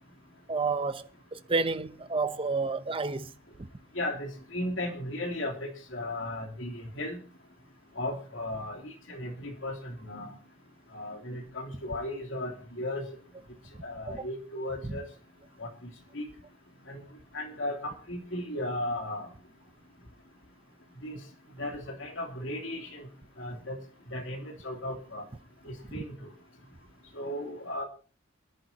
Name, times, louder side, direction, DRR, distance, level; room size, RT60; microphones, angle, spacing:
voice 1, 0.5-3.3 3.6-3.7 14.1-14.3 14.8-15.0 25.9-26.0, right 4 dB, 25° right, 0.8 m, -31 dB
voice 2, 3.9-7.2 8.0-10.3 10.9-13.1 13.8-15.0 15.6-15.7 16.1-16.2 16.9-17.0 17.3-19.3 21.0-21.2 21.6-23.1 23.4-23.8 24.1-25.2 25.6-26.3 27.1-27.8, left 1 dB, 70° left, 3.1 m, -36 dB
28.5 x 10.5 x 2.8 m
head